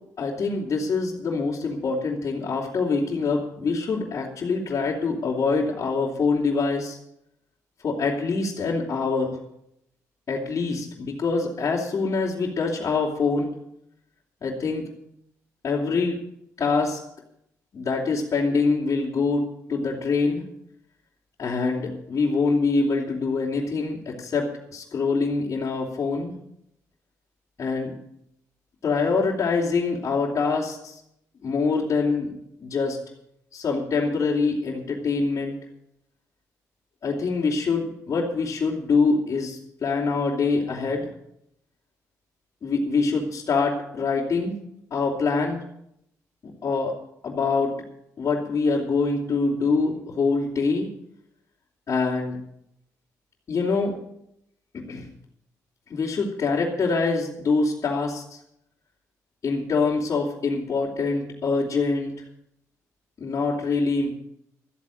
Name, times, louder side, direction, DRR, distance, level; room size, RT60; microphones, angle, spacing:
voice 1, 0.2-7.0 7.8-9.4 10.3-13.5 14.4-14.9 15.6-16.2 16.6-17.0 17.7-20.4 21.4-26.3 27.6-27.9 28.8-31.0 31.4-32.3 32.6-33.0 33.5-35.5 37.0-41.1 42.6-44.6 44.9-45.6 46.6-46.9 47.2-47.7 48.2-50.9 51.9-52.4 53.5-54.0 54.7-55.1 55.9-58.4 59.4-62.1 63.2-64.1, left 4 dB, 50° left, -5 dB, 3.3 m, -25 dB
14.0 x 8.4 x 8.6 m, 0.76 s
cardioid pair, 75°, 6 cm